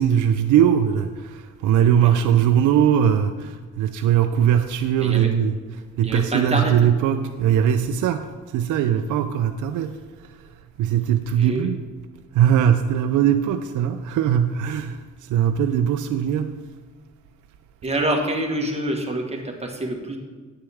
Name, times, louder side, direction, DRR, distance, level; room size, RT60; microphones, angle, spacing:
voice 1, 0.0-8.3 8.5-10.3 10.8-11.8 12.3-16.5 17.9-18.0, right 9 dB, 80° right, 7 dB, 0.5 m, -20 dB
voice 2, 6.0-6.7 11.4-11.7 17.8-20.2, right 1 dB, 20° right, 1 dB, 1.5 m, -26 dB
10.0 x 8.3 x 3.5 m, 1.4 s
cardioid pair, 90°, 30 cm